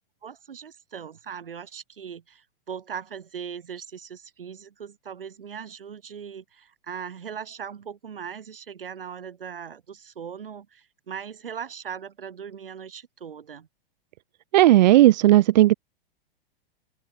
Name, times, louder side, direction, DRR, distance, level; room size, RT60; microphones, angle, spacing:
voice 1, 0.2-13.7, right 7 dB, 70° right, 3.6 m, -39 dB
voice 2, 14.5-15.7, right 15 dB, 50° right, 0.5 m, -15 dB
open air
figure-of-eight pair, 100°, 29 cm